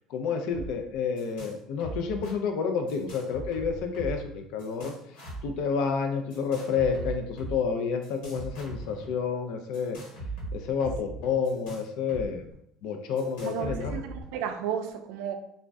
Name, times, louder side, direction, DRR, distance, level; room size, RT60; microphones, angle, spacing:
voice 1, 0.1-4.9 5.4-10.0 10.5-12.5 12.8-14.0, left 6 dB, 70° left, 5 dB, 0.4 m, -29 dB
sound 1, 0.5-1.5 1.8-2.3 2.9-4.3 4.6-5.5 6.3-7.6 8.0-9.1 9.7-12.3 12.5-12.6 13.2-14.2, right 2 dB, 90° left, 1.2 m, -39 dB
voice 2, 13.4-15.3, right 8 dB, 85° right, 6 dB, 0.3 m, -33 dB
2.5 x 2.1 x 3.3 m, 0.72 s
cardioid pair, 145°, 0 cm